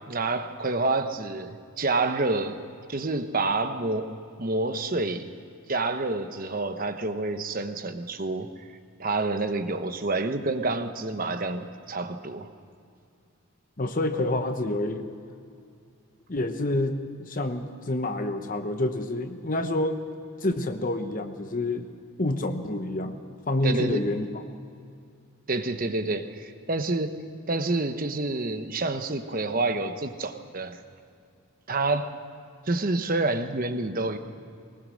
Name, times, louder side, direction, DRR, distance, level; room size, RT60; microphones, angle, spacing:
voice 1, 0.1-2.6 2.9-5.3 5.7-8.5 9.0-12.5 23.6-24.1 25.5-27.2 27.5-30.8 31.7-32.1 32.7-34.2, right 2 dB, 40° right, 8 dB, 1.0 m, -28 dB
voice 2, 13.8-15.1 16.3-20.0 20.4-21.9 22.2-23.2 23.5-24.4, left 1 dB, 35° left, 7 dB, 0.9 m, -28 dB
21.5 x 20.0 x 6.4 m, 2.4 s
head